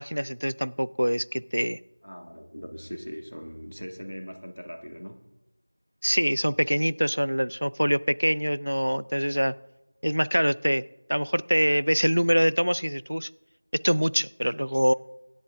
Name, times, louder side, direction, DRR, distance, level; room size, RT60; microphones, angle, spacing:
voice 1, 0.0-1.8 6.0-9.5 10.0-13.3 13.8-14.9, equal, 80° right, 0.5 m, -24 dB
voice 2, 2.0-5.2, equal, 85° left, 1.8 m, -40 dB
24.0 x 10.5 x 2.6 m
figure-of-eight pair, 175°, 0 cm